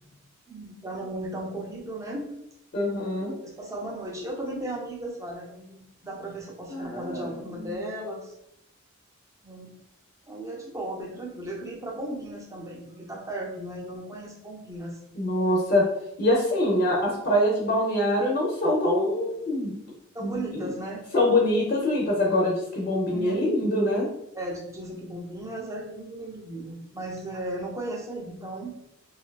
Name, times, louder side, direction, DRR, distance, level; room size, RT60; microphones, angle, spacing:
voice 1, 0.5-2.3 3.2-8.4 9.4-9.7 10.3-15.0 20.1-21.1 23.1-23.5 24.3-28.7, right 1 dB, 15° right, -1 dB, 0.3 m, -36 dB
voice 2, 2.7-3.3 6.7-7.7 15.1-15.8 16.2-19.8 20.2-20.7 21.1-24.1, left 1 dB, 45° left, -3 dB, 0.5 m, -24 dB
2.6 x 2.2 x 2.2 m, 0.79 s
head